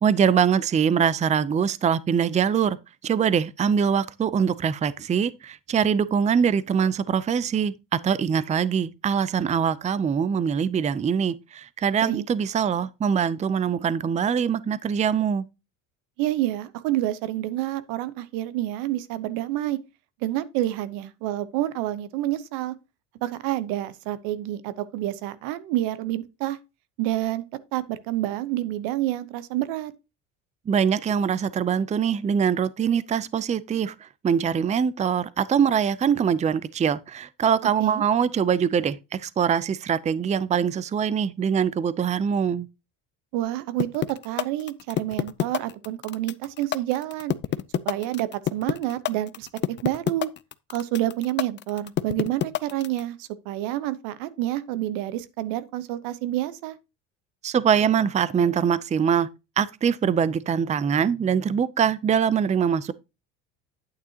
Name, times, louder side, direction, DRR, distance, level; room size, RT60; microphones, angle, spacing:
voice 1, 0.0-2.8 3.0-7.7 8.0-15.4 30.7-33.9 34.2-42.7 57.4-59.3 59.6-62.9, right 7 dB, 20° right, 0.5 m, -23 dB
voice 2, 16.2-19.8 20.2-22.7 23.2-26.6 27.0-27.4 27.7-29.9 37.8-38.0 43.3-47.3 47.8-50.3 50.7-56.8, right 14 dB, 80° right, 1.0 m, -28 dB
sound 1, 43.8-53.0, left 11 dB, 35° left, 0.5 m, -26 dB
9.3 x 8.4 x 2.8 m
supercardioid pair, 105°, 34 cm